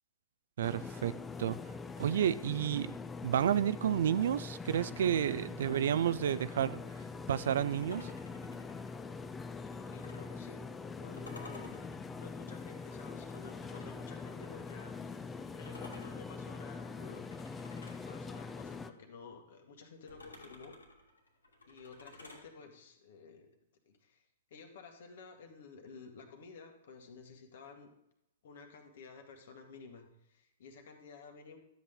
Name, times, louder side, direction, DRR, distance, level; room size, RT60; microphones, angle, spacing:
sound 1, 0.6-18.9, left 4 dB, 15° left, 0.6 m, -43 dB
voice 1, 0.6-1.1 1.4-1.6 2.0-3.0 3.2-6.8 7.3-8.1, right 9 dB, 60° right, 17 dB, 0.4 m, -30 dB
sound 2, 7.8-10.4 11.1-14.1 15.6-18.1 20.1-22.5, left 2 dB, 85° left, 2.5 m, -54 dB
voice 2, 9.9-17.3 17.6-20.7 21.7-23.5 23.9-24.3 24.5-27.9 28.4-31.6, left 5 dB, 60° left, 4 dB, 1.9 m, -53 dB
12.5 x 8.3 x 3.8 m, 0.81 s
figure-of-eight pair, 110°, 0 cm